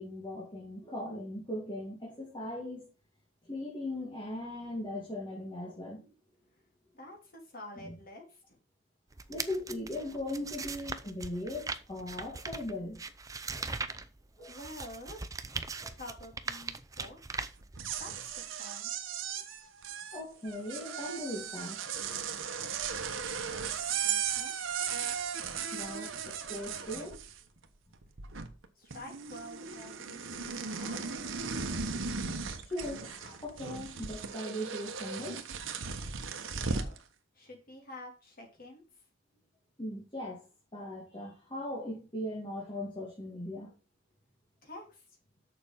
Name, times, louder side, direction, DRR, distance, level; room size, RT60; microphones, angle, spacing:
voice 1, 0.0-2.9 3.5-6.1 7.8-7.9 9.3-13.0 13.5-13.7 14.4-14.5 15.8-15.9 20.1-21.8 25.7-27.2 32.6-35.8 39.8-40.4 40.7-43.7, left 1 dB, 25° left, 2.4 m, -39 dB
voice 2, 6.9-8.4 14.5-15.5 15.9-17.2 18.0-18.1 18.6-18.9 23.5-23.7 24.0-24.6 28.8-31.2 36.5-37.0 37.3-38.8 44.6-45.0, left 1 dB, 45° left, 3.4 m, -48 dB
sound 1, 9.1-18.2, right 4 dB, 15° right, 0.5 m, -40 dB
sound 2, 17.6-27.6 27.9-28.7 28.9-37.0, right 6 dB, 75° right, 1.2 m, -37 dB
6.9 x 6.6 x 5.8 m
head